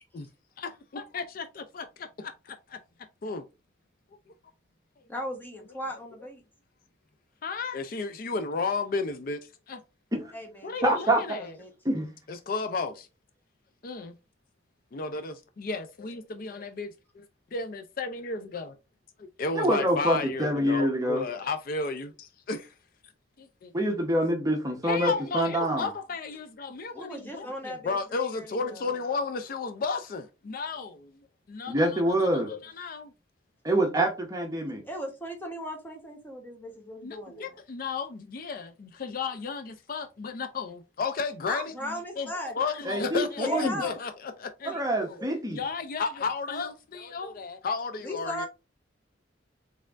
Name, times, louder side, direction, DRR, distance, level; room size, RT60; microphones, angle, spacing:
voice 1, 0.6-2.8 3.2-3.4 7.4-9.4 9.7-9.8 10.6-11.5 12.3-13.1 13.8-14.1 14.9-16.9 17.2-17.3 17.5-18.8 19.2-22.7 23.4-23.7 24.8-31.1 31.5-33.1 37.0-41.7 42.2-42.3 42.5-44.1 44.4-45.3 45.5-48.5, left 4 dB, 45° left, 0.4 m, -33 dB
voice 2, 5.1-6.4 10.3-11.7 26.9-29.0 34.8-37.5 41.5-42.5 43.4-43.9 45.2-45.3 48.0-48.5, equal, 10° left, 1.0 m, -37 dB
voice 3, 10.8-11.4 11.8-12.1 19.5-21.2 23.7-25.9 31.7-32.5 33.6-34.8 42.8-43.8 44.7-45.6, right 1 dB, 20° right, 0.8 m, -26 dB
4.3 x 3.5 x 2.4 m
head